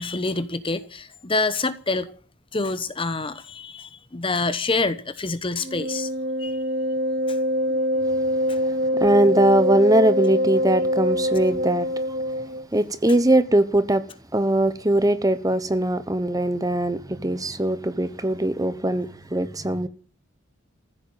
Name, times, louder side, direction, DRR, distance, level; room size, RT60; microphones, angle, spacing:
voice 1, 0.0-2.1 2.5-6.1 6.4-6.6 7.3-7.4 7.7-8.0 8.5-8.6, left 3 dB, 25° left, 1.0 m, -27 dB
Wind instrument woodwind instrument, 5.6-12.6, equal, 45° right, 2.6 m, -24 dB
voice 2, 8.6-12.2 12.7-14.0 14.3-19.9, right 1 dB, 15° right, 1.0 m, -21 dB
15.5 x 8.8 x 9.0 m
head